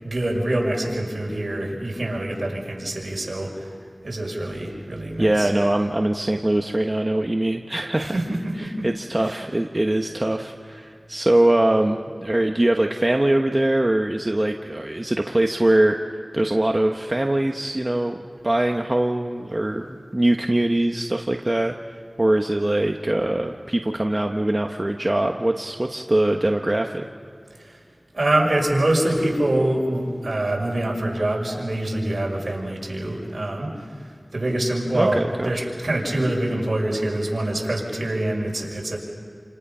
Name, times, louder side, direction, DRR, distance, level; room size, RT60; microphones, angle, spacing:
voice 1, 0.0-3.7 4.0-5.5 7.9-8.9 9.2-9.4 27.6-27.8 28.1-33.7 34.0-39.0, right 1 dB, 75° right, -1 dB, 5.9 m, -25 dB
voice 2, 5.2-8.1 8.6-16.0 16.3-21.8 22.2-27.0 34.9-35.7, right 1 dB, 35° right, 3 dB, 1.1 m, -22 dB
29.5 x 28.0 x 5.6 m, 2.2 s
wide cardioid pair, 45°, 0 cm